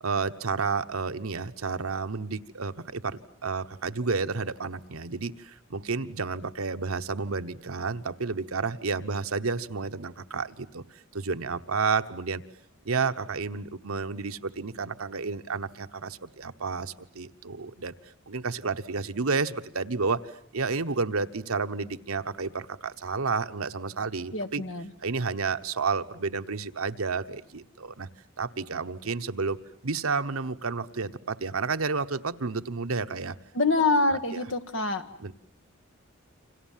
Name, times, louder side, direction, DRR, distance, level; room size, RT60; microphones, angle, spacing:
voice 1, 0.0-10.8 11.1-12.4 12.8-17.9 18.3-20.2 20.5-24.6 25.0-28.1 28.4-33.3 34.1-34.2 35.2-35.3, right 4 dB, 85° right, 9 dB, 1.1 m, -31 dB
voice 2, 24.3-24.9 33.5-35.1, left 3 dB, 60° left, 8 dB, 1.7 m, -25 dB
29.5 x 26.0 x 7.4 m, 0.64 s
head